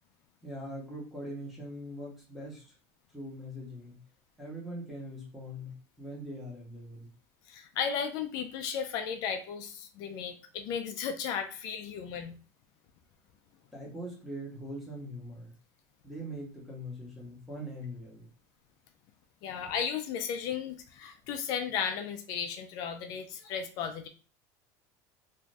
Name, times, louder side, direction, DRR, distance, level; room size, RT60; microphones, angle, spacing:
voice 1, 0.4-2.6 3.1-4.0 4.4-7.1 13.7-15.5 16.0-18.3, equal, ahead, -4 dB, 0.8 m, -42 dB
voice 2, 7.5-12.3 19.4-24.1, left 7 dB, 45° left, 6 dB, 0.3 m, -35 dB
2.5 x 2.3 x 3.1 m, 0.37 s
cardioid pair, 170°, 9 cm